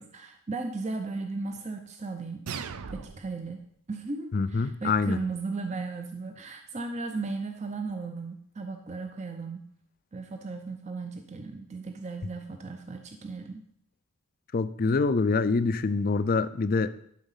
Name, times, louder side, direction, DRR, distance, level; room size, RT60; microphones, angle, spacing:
voice 1, 0.0-2.5 2.9-3.6 3.9-9.7 10.1-13.6, right 3 dB, 30° right, 5 dB, 0.5 m, -36 dB
sound 1, 2.5-3.5, right 6 dB, 80° right, 0.5 m, -38 dB
voice 2, 4.3-5.2 14.5-16.9, left 4 dB, 40° left, 13 dB, 0.4 m, -25 dB
11.5 x 4.1 x 5.6 m, 0.70 s
head